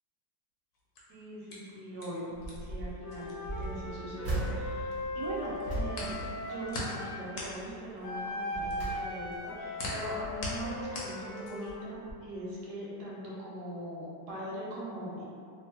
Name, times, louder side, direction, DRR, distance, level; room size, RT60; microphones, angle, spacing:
sound 1, 0.8-4.9 5.2-11.8, left 2 dB, 65° left, 0.9 m, -42 dB
voice 1, 1.1-15.2, right 1 dB, 85° right, -6 dB, 1.2 m, -41 dB
sound 2, 2.4-3.0 3.4-7.1 7.4-7.8 8.3-9.5 10.0-11.0 11.7-11.8 12.1-12.2, right 2 dB, 50° right, 0.6 m, -39 dB
Wind instrument woodwind instrument, 3.0-7.2 8.0-11.9, left 1 dB, 85° left, 0.6 m, -39 dB
2.6 x 2.6 x 2.7 m, 2.4 s
omnidirectional pair, 1.8 m